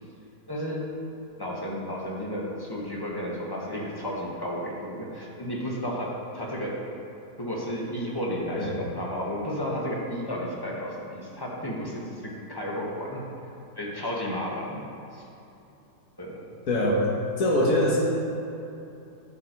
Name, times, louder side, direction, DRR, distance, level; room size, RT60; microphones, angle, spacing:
voice 1, 0.5-0.8 1.4-6.8 7.4-13.2 13.8-15.2 16.2-16.4, equal, 15° left, -4 dB, 1.6 m, -32 dB
voice 2, 16.7-18.1, left 1 dB, 60° left, -3 dB, 1.9 m, -23 dB
11.0 x 7.2 x 4.7 m, 2.8 s
omnidirectional pair, 1.7 m